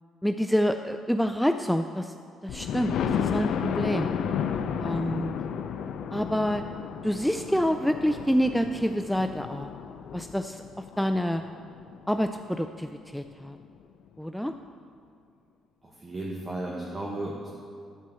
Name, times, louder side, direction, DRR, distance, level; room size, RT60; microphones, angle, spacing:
voice 1, 0.2-2.1 2.4-4.1 4.8-5.4 6.1-6.6 7.0-9.7 10.1-10.6 11.0-11.4 12.1-13.6 14.2-14.5, equal, ahead, 7 dB, 0.3 m, -27 dB
Thunder, 2.5-12.2 12.8-12.9 13.3-13.4 13.6-13.7, left 7 dB, 70° left, 0.5 m, -32 dB
voice 2, 15.8-17.5, right 1 dB, 25° right, -3 dB, 1.4 m, -34 dB
13.0 x 4.4 x 7.5 m, 2.3 s
cardioid pair, 115°, 0 cm